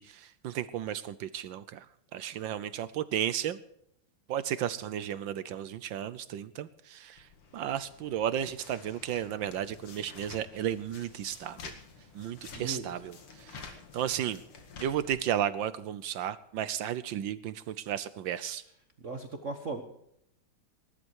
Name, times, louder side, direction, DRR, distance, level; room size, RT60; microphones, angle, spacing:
voice 1, 0.0-1.9 2.1-3.6 4.3-7.3 7.5-11.7 12.1-14.4 14.8-18.6, right 10 dB, 70° right, 15 dB, 1.4 m, -34 dB
sound 1, 7.2-15.2, left 5 dB, 85° left, 2.9 m, -50 dB
voice 2, 12.5-12.8 19.0-19.8, right 3 dB, 40° right, 5 dB, 1.4 m, -37 dB
19.5 x 11.5 x 4.7 m, 0.74 s
omnidirectional pair, 2.3 m